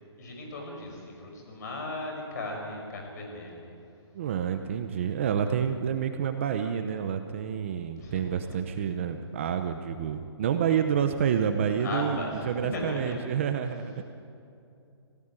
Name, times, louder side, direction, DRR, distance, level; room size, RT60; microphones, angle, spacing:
voice 1, 0.2-3.6 8.0-8.4 11.8-13.2, left 2 dB, 40° left, 1 dB, 6.0 m, -36 dB
voice 2, 4.1-14.0, right 8 dB, 25° right, 7 dB, 0.8 m, -28 dB
27.0 x 17.0 x 9.1 m, 2.6 s
hypercardioid pair, 170°, 15 cm